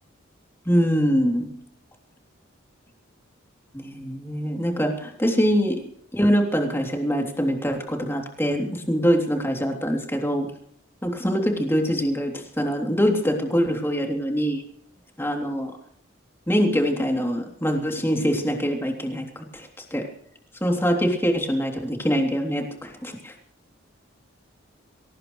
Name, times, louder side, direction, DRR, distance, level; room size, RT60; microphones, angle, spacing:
voice 1, 0.6-1.4 3.7-5.8 6.1-10.5 11.0-14.6 15.2-15.7 16.5-20.1 20.6-23.3, equal, 10° left, 2 dB, 3.1 m, -24 dB
22.0 x 18.5 x 3.2 m, 0.68 s
head